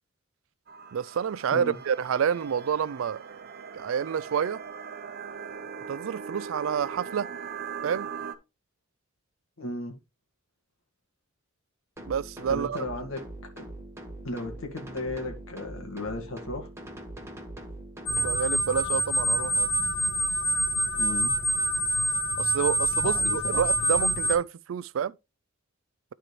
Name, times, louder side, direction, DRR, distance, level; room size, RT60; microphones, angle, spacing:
sound 1, 0.7-8.3, right 6 dB, 50° right, 0.8 m, -40 dB
voice 1, 0.9-3.2 3.7-4.6 5.9-7.3 7.8-8.1 12.0-12.8 18.2-19.7 22.4-25.2, right 7 dB, 70° right, 0.4 m, -28 dB
voice 2, 9.6-10.0 12.5-13.2 13.6-13.7 14.2-16.7 20.9-21.3 23.0-23.6, left 2 dB, 90° left, 2.0 m, -35 dB
sound 2, 12.0-18.4, right 1 dB, 15° right, 1.5 m, -42 dB
sound 3, 18.1-24.3, right 1 dB, 65° left, 2.1 m, -26 dB
12.0 x 4.5 x 3.2 m
head